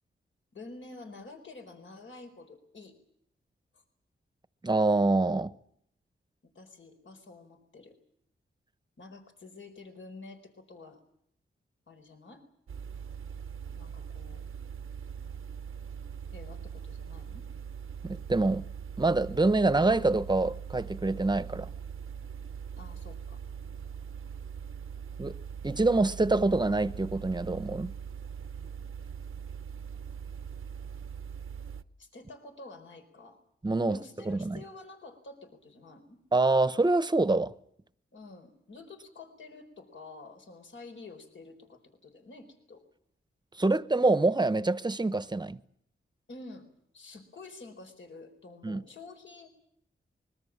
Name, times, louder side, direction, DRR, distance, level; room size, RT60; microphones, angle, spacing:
voice 1, 0.5-3.0 3.7-3.8 6.4-8.0 9.0-11.0 11.9-12.4 13.7-14.4 16.3-17.5 22.8-23.4 32.0-33.4 33.9-36.2 38.1-42.8 46.3-46.7 46.9-49.5, left 3 dB, 65° left, 4.5 m, -49 dB
voice 2, 4.6-5.5 18.0-18.7 19.0-21.7 25.2-25.3 25.6-27.9 33.6-34.0 34.3-34.6 36.3-37.5 43.6-45.6 48.6-48.8, right 2 dB, 20° right, 1.0 m, -26 dB
sound 1, 12.7-31.8, right 7 dB, 80° right, 0.9 m, -41 dB
25.0 x 22.5 x 7.4 m
wide cardioid pair, 85°, 21 cm